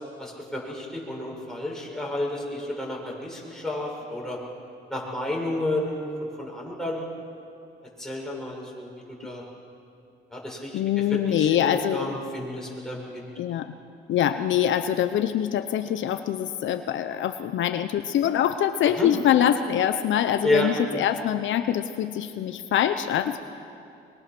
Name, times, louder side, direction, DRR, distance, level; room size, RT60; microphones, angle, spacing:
voice 1, 0.2-4.4 4.9-7.0 8.0-8.9 9.2-9.4 10.3-13.3 19.0-19.1 20.4-21.0, left 1 dB, ahead, -3 dB, 6.6 m, -31 dB
voice 2, 10.7-12.1 13.4-13.7 14.1-23.4, left 10 dB, 75° left, 9 dB, 0.8 m, -24 dB
23.5 x 23.5 x 6.1 m, 2.6 s
cardioid pair, 90°, 20 cm